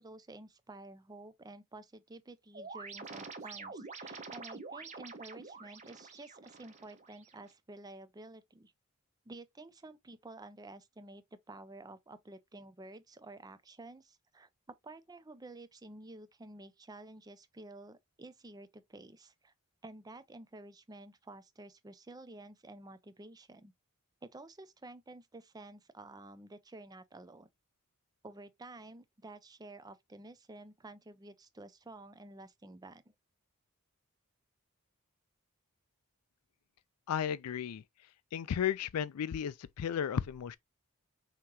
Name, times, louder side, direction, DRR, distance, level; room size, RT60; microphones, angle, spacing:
voice 1, 0.0-8.7 9.3-14.5 14.8-19.5 19.8-23.7 24.2-27.5 28.2-33.1, right 2 dB, 15° right, 0.5 m, -51 dB
sound 1, 2.5-7.5, right 4 dB, 35° right, 0.9 m, -47 dB
voice 2, 37.1-37.8 38.3-40.6, left 8 dB, 90° left, 0.4 m, -34 dB
5.5 x 2.9 x 3.0 m
head